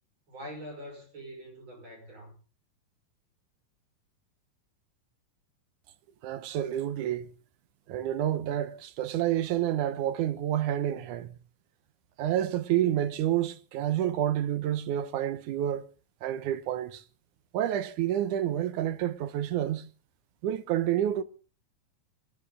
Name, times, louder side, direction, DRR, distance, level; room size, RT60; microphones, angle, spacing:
voice 1, 0.3-2.4, equal, 35° right, 6.4 m, -44 dB
voice 2, 6.2-7.3 7.9-11.4 12.2-15.8 16.2-17.0 17.5-19.9 20.4-21.2, right 11 dB, 70° right, 2.2 m, -29 dB
23.0 x 13.0 x 3.7 m
omnidirectional pair, 4.0 m